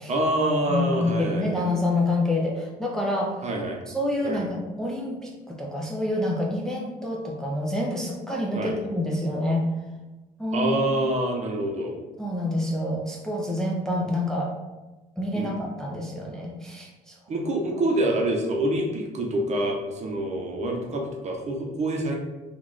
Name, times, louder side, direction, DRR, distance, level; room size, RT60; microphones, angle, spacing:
voice 1, 0.1-1.7 3.4-3.8 4.2-4.5 8.5-8.7 10.5-12.0 15.3-15.6 17.3-22.2, right 1 dB, 40° right, 1 dB, 0.8 m, -26 dB
voice 2, 0.7-3.5 3.9-9.7 10.4-10.7 12.2-14.5 15.2-17.2, left 1 dB, 5° left, -2 dB, 0.4 m, -27 dB
3.0 x 2.4 x 3.8 m, 1.1 s
cardioid pair, 110°, 17 cm